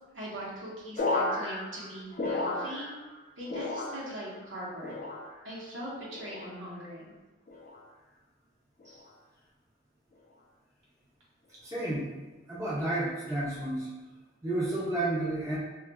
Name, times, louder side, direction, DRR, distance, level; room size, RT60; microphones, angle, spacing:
voice 1, 0.1-2.9 3.4-4.9 5.4-7.1, right 1 dB, 75° right, -6 dB, 0.9 m, -40 dB
sound 1, 1.0-3.2 3.5-4.3 4.8-5.5 6.1-6.6 7.5-7.9 8.8-9.1, left 2 dB, 40° left, 0.4 m, -34 dB
voice 2, 11.6-12.1 12.5-13.9 14.4-15.6, right 1 dB, 15° right, -9 dB, 0.7 m, -31 dB
3.9 x 2.3 x 2.3 m, 1.2 s
head